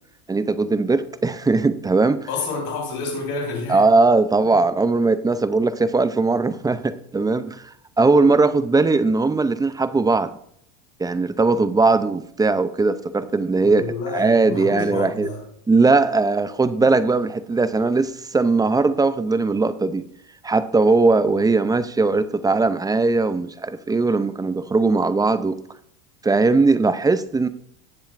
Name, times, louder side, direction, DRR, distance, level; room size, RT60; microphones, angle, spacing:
voice 1, 0.3-2.3 3.7-10.3 11.0-15.3 15.7-20.0 20.4-25.6 26.2-27.5, right 3 dB, 10° right, 13 dB, 0.4 m, -19 dB
voice 2, 2.3-3.8 4.4-4.6 13.6-15.4, left 3 dB, 85° left, 0 dB, 4.2 m, -29 dB
17.0 x 7.4 x 2.5 m, 0.69 s
supercardioid pair, 105°, 42 cm